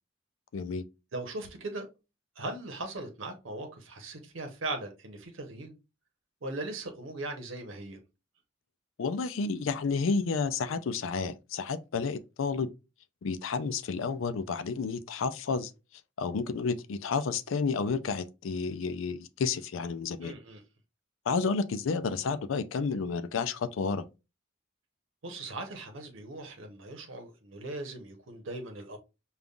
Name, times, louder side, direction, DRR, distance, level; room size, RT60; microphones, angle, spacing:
voice 1, 0.5-0.8 9.0-12.7 13.2-15.7 16.2-20.3 21.3-24.0, left 4 dB, 90° left, 0.4 m, -31 dB
voice 2, 1.1-1.9 2.4-5.7 6.4-8.0 20.2-20.6 25.2-29.0, right 2 dB, 90° right, 0.9 m, -39 dB
5.2 x 2.4 x 2.3 m
head